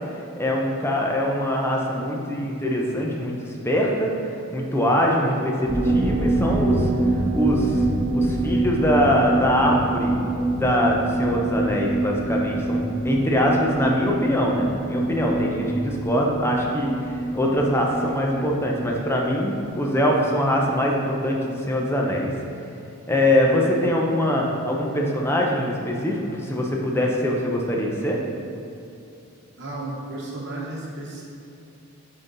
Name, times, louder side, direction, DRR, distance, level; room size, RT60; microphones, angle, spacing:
voice 1, 0.4-4.1 4.5-6.9 7.3-7.9 8.1-10.2 10.5-22.3 23.1-28.2, equal, 10° left, -1 dB, 0.7 m, -23 dB
sound 1, 5.7-21.1 21.3-21.4 21.7-21.8, right 2 dB, 15° right, 1.1 m, -26 dB
voice 2, 29.6-31.2, right 2 dB, 55° right, -4 dB, 1.2 m, -33 dB
8.5 x 3.9 x 4.0 m, 2.7 s
head